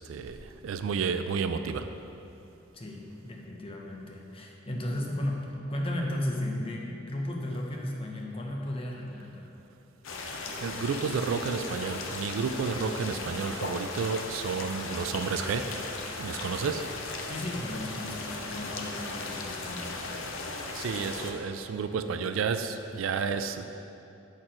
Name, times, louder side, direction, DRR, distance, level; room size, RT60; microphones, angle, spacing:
voice 1, 0.0-1.9 10.6-15.8 16.2-16.9 20.6-23.6, right 5 dB, 85° right, 9 dB, 0.3 m, -31 dB
voice 2, 2.7-9.5 17.3-20.2, left 1 dB, 30° left, 0 dB, 0.7 m, -35 dB
sound 1, 10.0-21.3, left 3 dB, 80° left, 0.6 m, -37 dB
5.9 x 4.4 x 4.9 m, 2.7 s
head